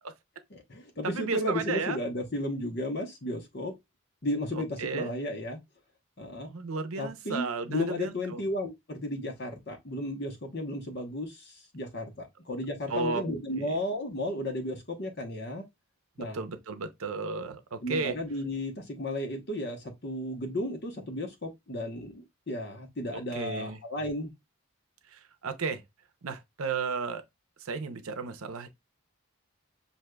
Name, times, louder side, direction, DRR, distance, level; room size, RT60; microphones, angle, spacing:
voice 1, 0.5-3.7 4.2-5.6 6.2-6.5 7.0-15.6 16.2-16.4 17.8-24.3, left 1 dB, 50° left, 1.0 m, -34 dB
voice 2, 1.0-2.0 4.5-5.1 6.4-8.4 12.9-13.2 13.6-13.8 16.2-18.2 23.3-23.8 25.1-25.8 26.2-27.2 27.6-28.7, right 4 dB, 80° right, 0.7 m, -33 dB
6.3 x 2.6 x 2.2 m
head